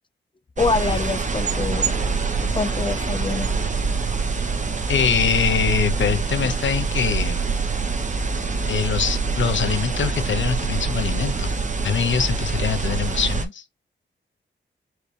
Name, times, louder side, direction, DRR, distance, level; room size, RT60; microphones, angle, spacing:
voice 1, 0.6-1.9 2.5-3.5, left 4 dB, 25° left, 0.4 m, -25 dB
sound 1, 0.6-13.5, right 4 dB, 40° right, 0.8 m, -25 dB
voice 2, 4.9-7.4 8.7-11.5 11.8-13.6, left 7 dB, 75° left, 0.7 m, -23 dB
4.7 x 3.2 x 3.3 m
cardioid pair, 70°, 20 cm